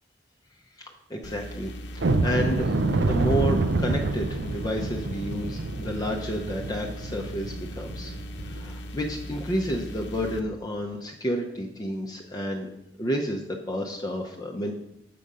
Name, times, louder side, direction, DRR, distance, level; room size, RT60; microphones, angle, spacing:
voice 1, 0.8-1.7 2.2-2.7 3.0-8.1 8.4-12.7 13.0-13.4 13.7-14.7, equal, 20° left, 0 dB, 0.5 m, -30 dB
sound 1, 1.2-10.4, equal, 75° left, 0.8 m, -39 dB
sound 2, 2.0-8.7 9.1-9.2 9.7-9.8 10.3-10.5, right 2 dB, 80° right, 0.5 m, -28 dB
7.6 x 4.9 x 5.4 m, 0.86 s
head